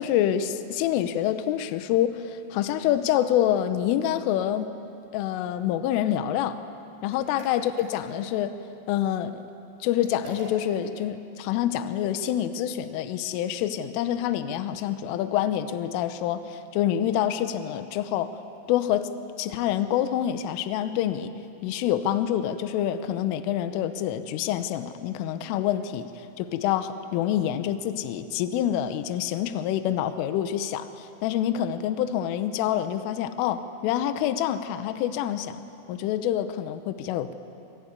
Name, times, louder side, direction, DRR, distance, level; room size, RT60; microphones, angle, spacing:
voice 1, 0.0-4.7 5.1-6.6 7.0-8.6 8.9-9.4 9.8-18.3 18.7-19.1 19.4-21.3 21.6-35.6 35.9-37.3, left 11 dB, 80° left, 10 dB, 3.4 m, -27 dB
sound 1, 7.1-8.4 10.0-10.9, right 1 dB, 90° right, 7.0 m, -44 dB
24.5 x 21.5 x 9.8 m, 2.7 s
omnidirectional pair, 5.9 m